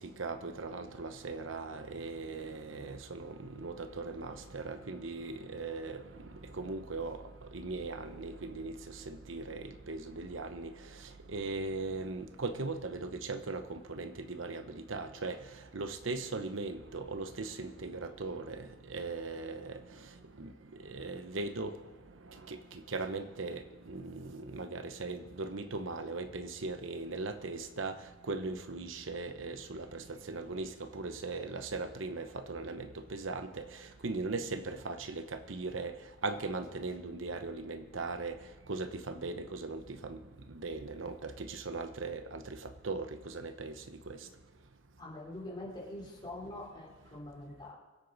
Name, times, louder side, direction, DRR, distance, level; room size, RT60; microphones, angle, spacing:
voice 1, 0.0-21.8 22.2-40.2 40.5-44.3, right 3 dB, 85° right, 9 dB, 1.0 m, -39 dB
voice 2, 45.0-47.7, left 1 dB, 25° left, -4 dB, 3.7 m, -44 dB
24.0 x 8.3 x 4.0 m, 1.2 s
head